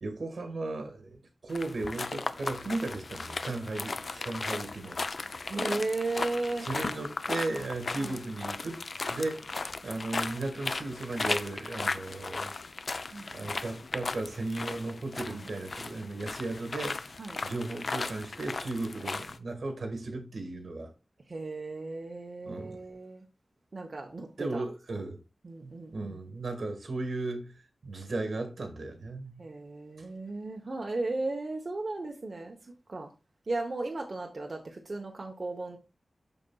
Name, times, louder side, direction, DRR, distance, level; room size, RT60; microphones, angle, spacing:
voice 1, 0.0-5.0 6.6-8.8 9.1-12.5 12.9-13.1 13.3-17.0 17.4-20.9 22.5-22.8 24.4-25.2 25.6-29.4 30.0-30.1, right 2 dB, 80° right, 1.6 m, -36 dB
sound 1, 1.5-19.4, left 3 dB, 60° left, 0.5 m, -36 dB
voice 2, 5.5-6.7 8.0-8.2 13.1-13.5 15.3-15.4 17.2-17.4 21.3-23.2 23.7-24.7 25.4-26.2 29.4-32.6 32.9-33.1 33.5-35.8, right 2 dB, 50° right, 0.9 m, -35 dB
11.5 x 4.0 x 2.3 m
wide cardioid pair, 100°, 0 cm